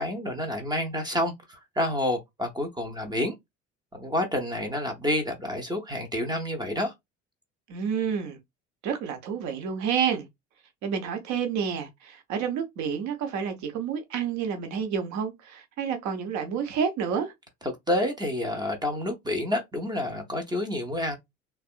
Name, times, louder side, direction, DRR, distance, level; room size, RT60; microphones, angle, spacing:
voice 1, 0.0-3.3 3.9-6.9 17.6-21.2, left 1 dB, 10° right, 0.8 m, -29 dB
voice 2, 7.7-8.4 8.8-10.3 10.8-17.3, right 7 dB, 50° right, 1.0 m, -29 dB
3.4 x 2.3 x 2.4 m
figure-of-eight pair, 55°, 36 cm